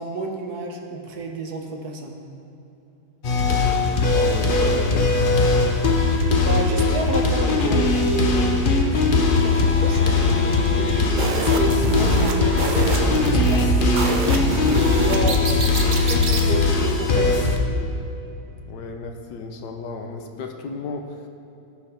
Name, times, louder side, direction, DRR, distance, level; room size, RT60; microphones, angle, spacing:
voice 1, 0.0-2.2 6.4-10.0 10.8-15.6 16.0-17.5, right 2 dB, 70° right, 3 dB, 1.5 m, -30 dB
sound 1, 3.2-17.6, left 3 dB, 40° left, 0.8 m, -20 dB
voice 2, 4.1-5.1 18.7-21.3, left 4 dB, 85° left, 4 dB, 1.5 m, -33 dB
Bowed string instrument, 9.5-15.7, equal, 65° left, 2.3 m, -36 dB
sound 2, 11.2-16.5, right 3 dB, 40° right, 0.7 m, -26 dB
17.0 x 6.8 x 3.5 m, 2.9 s
omnidirectional pair, 1.8 m